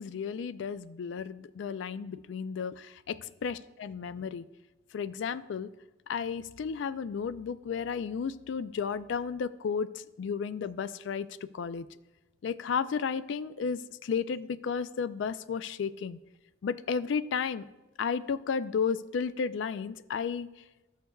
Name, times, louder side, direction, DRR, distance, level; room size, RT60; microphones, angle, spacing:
voice 1, 0.0-4.5 4.9-5.7 6.1-11.9 12.4-16.2 16.6-17.6 18.0-20.5, left 6 dB, 75° left, 16 dB, 0.3 m, -33 dB
14.0 x 6.5 x 2.3 m, 1.1 s
head